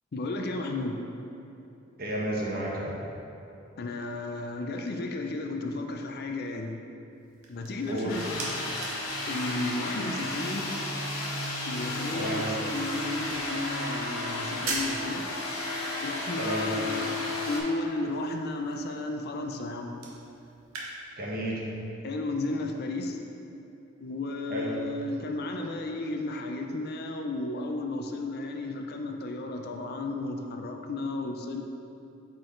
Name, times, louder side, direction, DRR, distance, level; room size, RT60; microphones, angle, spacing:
voice 1, 0.1-1.0 3.8-6.8 7.5-8.3 9.3-10.9 11.6-15.2 16.0-17.2 17.5-20.0 22.0-23.2 24.0-31.6, left 2 dB, 50° left, 4 dB, 0.5 m, -33 dB
voice 2, 2.0-3.0 7.9-8.2 12.1-12.4 16.4-16.7 21.2-21.6 24.5-24.8, right 1 dB, 45° right, -4 dB, 1.2 m, -32 dB
sound 1, 7.1-20.9, right 3 dB, 75° right, 1.1 m, -44 dB
sound 2, 8.1-17.6, left 2 dB, 85° left, 1.3 m, -33 dB
8.4 x 4.8 x 3.2 m, 2.8 s
head